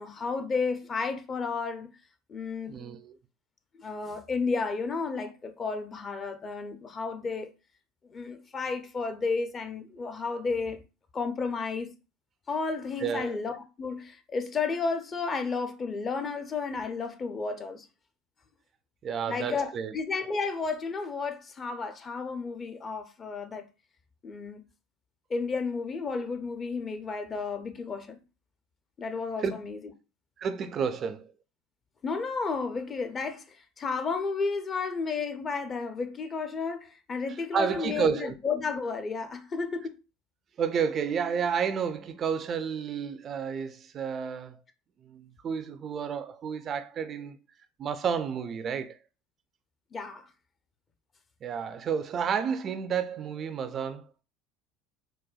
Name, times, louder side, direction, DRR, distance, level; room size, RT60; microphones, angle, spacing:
voice 1, 0.0-1.9 2.3-2.7 3.8-7.5 8.1-10.8 11.1-11.9 12.5-17.9 19.3-23.7 24.2-24.6 25.3-28.2 29.0-29.9 32.0-40.0 49.9-50.3, left 4 dB, 30° left, 0.6 m, -32 dB
voice 2, 2.7-3.1 13.0-13.4 19.0-19.9 29.4-29.5 30.4-31.3 37.5-38.3 40.6-44.6 45.1-47.4 47.8-49.0 51.4-54.1, right 7 dB, 40° right, 0.3 m, -31 dB
4.0 x 2.2 x 2.3 m
hypercardioid pair, 75°, 0 cm